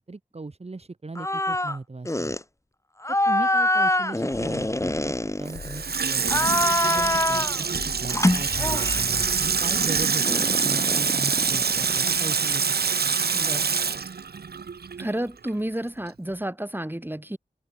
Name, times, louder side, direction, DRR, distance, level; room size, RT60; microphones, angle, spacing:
voice 1, 0.0-2.4 3.3-10.2 10.6-12.9, right 3 dB, 40° right, 1.4 m, -38 dB
sound 1, 1.2-1.8 2.1-2.4 3.0-5.8 6.2-7.6 8.1-9.2 10.3-12.1, left 1 dB, 20° left, 1.6 m, -25 dB
sound 2, 4.3-10.0, left 5 dB, 80° left, 1.7 m, -41 dB
Water tap faucet / Sink (filling or washing), 5.5-15.2 15.5-15.6, right 6 dB, 85° right, 1.5 m, -25 dB
voice 2, 13.3-13.6 15.0-17.4, right 1 dB, 10° right, 2.8 m, -31 dB
cardioid pair, 40°, 16 cm